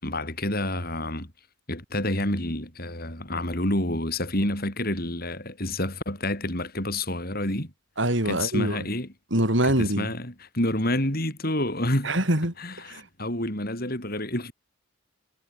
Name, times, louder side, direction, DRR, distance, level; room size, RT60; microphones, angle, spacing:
voice 1, 0.0-1.3 1.7-7.7 8.2-9.1 9.6-12.1 12.6-14.5, left 1 dB, 45° left, 7.7 m, -28 dB
voice 2, 8.0-8.8 9.3-10.1 12.0-13.1, right 1 dB, 60° right, 6.1 m, -25 dB
head